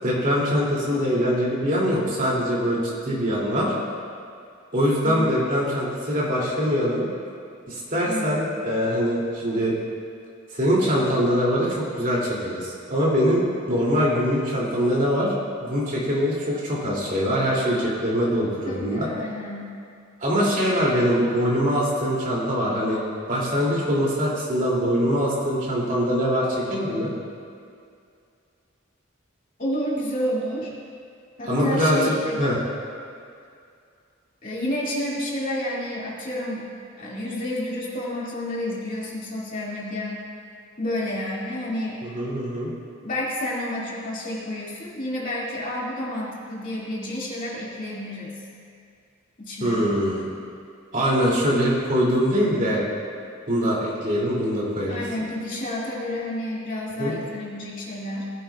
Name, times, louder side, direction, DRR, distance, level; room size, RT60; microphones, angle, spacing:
voice 1, 0.0-3.7 4.7-7.1 7.7-9.8 10.5-15.3 15.6-19.1 20.2-23.0 23.3-27.1 31.5-32.1 32.4-32.6 42.1-42.7 49.6-50.3 50.9-52.8 53.5-55.0 57.0-57.1, equal, 40° right, -5 dB, 2.7 m, -23 dB
voice 2, 8.0-8.5 18.6-19.6 29.6-30.7 31.4-32.4 34.4-36.7 37.0-40.2 40.8-42.0 43.0-48.3 49.4-49.9 54.9-58.2, left 1 dB, 40° left, -6 dB, 2.3 m, -30 dB
18.5 x 11.0 x 2.4 m, 2.3 s
head